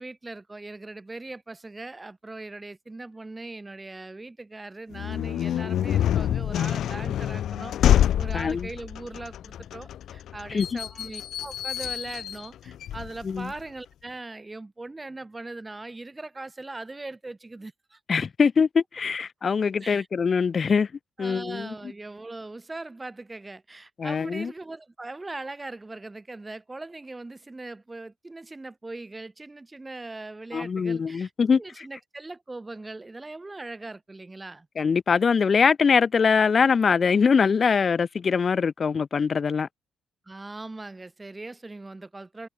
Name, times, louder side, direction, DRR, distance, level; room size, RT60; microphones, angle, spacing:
voice 1, 0.0-18.0 19.8-20.1 21.2-34.7 40.3-42.5, right 2 dB, 20° right, 4.5 m, -40 dB
sound 1, 4.9-13.6, left 11 dB, 70° left, 0.6 m, -27 dB
voice 2, 8.3-8.7 10.5-10.8 13.2-13.5 18.1-20.9 21.2-21.7 24.0-24.5 30.5-31.8 34.8-39.7, left 5 dB, 40° left, 1.4 m, -23 dB
cardioid pair, 90°, 0 cm